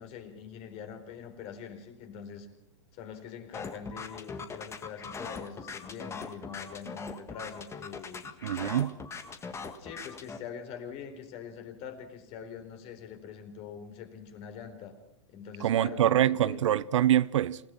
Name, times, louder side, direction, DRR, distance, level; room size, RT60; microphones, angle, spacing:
voice 1, 0.0-2.5 2.9-8.3 9.8-15.0 15.3-16.6, left 7 dB, 40° left, 4.3 m, -44 dB
sound 1, 3.5-10.4, left 5 dB, 15° left, 1.8 m, -41 dB
voice 2, 8.4-9.0 15.6-17.6, right 11 dB, 70° right, 0.8 m, -25 dB
28.0 x 17.5 x 5.9 m
hypercardioid pair, 125°, 16 cm